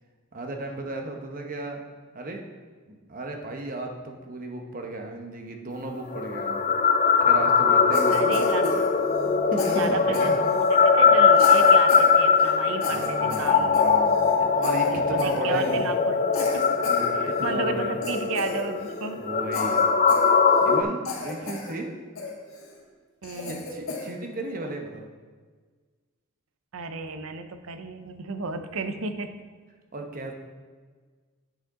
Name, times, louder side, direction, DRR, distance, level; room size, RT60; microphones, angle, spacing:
voice 1, 0.3-1.8 2.1-2.4 2.9-6.7 7.2-8.4 9.2-10.4 12.8-15.9 16.9-18.0 19.2-19.8 20.6-21.9 23.5-25.1 29.9-30.3, right 2 dB, 40° right, 3 dB, 0.9 m, -34 dB
sound 1, 6.1-20.8, left 5 dB, 35° left, 0.4 m, -21 dB
Cough, 7.9-9.3 9.6-10.8 11.3-12.1 12.4-12.5 12.8-14.4 14.6-14.9 15.2-15.8 16.3-17.5 18.0-19.1 19.5-20.8 21.0-21.7 22.2-22.7 23.2-24.1, left 3 dB, 80° left, 1.3 m, -34 dB
voice 2, 8.1-8.8 9.7-13.9 14.9-16.8 17.1-19.2 23.2-23.6 26.7-29.3, right 4 dB, 75° right, 8 dB, 0.6 m, -33 dB
8.2 x 6.2 x 3.7 m, 1.5 s
head